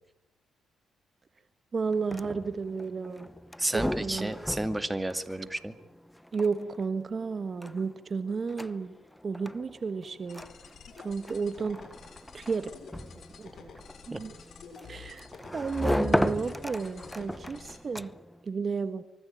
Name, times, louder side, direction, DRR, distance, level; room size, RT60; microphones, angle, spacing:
voice 1, 1.7-3.3 3.7-4.3 6.3-9.0 9.2-10.4 11.0-11.8 12.3-12.7 13.4-13.7 14.1-14.3 14.9-18.1 18.4-19.0, right 5 dB, 40° right, 10 dB, 1.5 m, -32 dB
sound 1, 1.9-18.4, left 1 dB, 5° left, 0.9 m, -36 dB
voice 2, 3.6-5.7 14.1-14.2, right 1 dB, 10° right, 9 dB, 2.3 m, -31 dB
sound 2, 10.3-17.8, left 6 dB, 60° left, 6.2 m, -50 dB
25.0 x 24.5 x 9.0 m, 0.91 s
cardioid pair, 75°, 0 cm